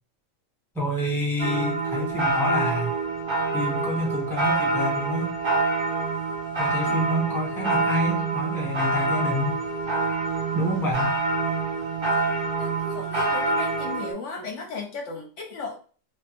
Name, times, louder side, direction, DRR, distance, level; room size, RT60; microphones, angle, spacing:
voice 1, 0.7-3.0 3.5-5.3 6.6-9.6 10.5-11.1, equal, ahead, -2 dB, 0.7 m, -27 dB
sound 1, 1.4-14.1, right 3 dB, 40° right, 0.4 m, -26 dB
voice 2, 12.6-15.8, left 4 dB, 65° left, 2 dB, 1.0 m, -36 dB
3.1 x 2.2 x 2.9 m, 0.39 s
omnidirectional pair, 1.4 m